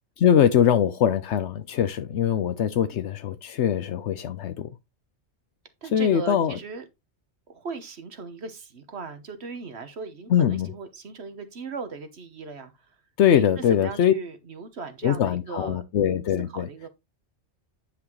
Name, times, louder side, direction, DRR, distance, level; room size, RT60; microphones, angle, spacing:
voice 1, 0.2-4.7 5.9-6.6 10.3-10.7 13.2-14.1 15.0-16.7, left 9 dB, 85° left, 1.0 m, -22 dB
voice 2, 5.8-6.8 7.5-12.9 13.3-15.8 16.5-16.9, right 4 dB, 70° right, 1.4 m, -38 dB
9.8 x 6.0 x 3.1 m
omnidirectional pair, 1.2 m